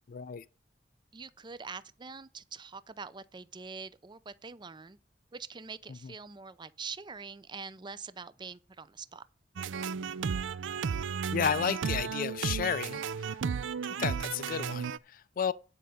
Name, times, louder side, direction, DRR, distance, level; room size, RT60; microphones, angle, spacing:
voice 1, 0.1-0.4 11.3-13.4 14.0-15.5, left 7 dB, 50° left, 0.4 m, -32 dB
voice 2, 1.1-5.0 5.3-9.3, right 5 dB, 25° right, 0.5 m, -44 dB
sound 1, 9.6-15.0, right 6 dB, 85° right, 0.4 m, -34 dB
9.8 x 5.1 x 6.6 m
head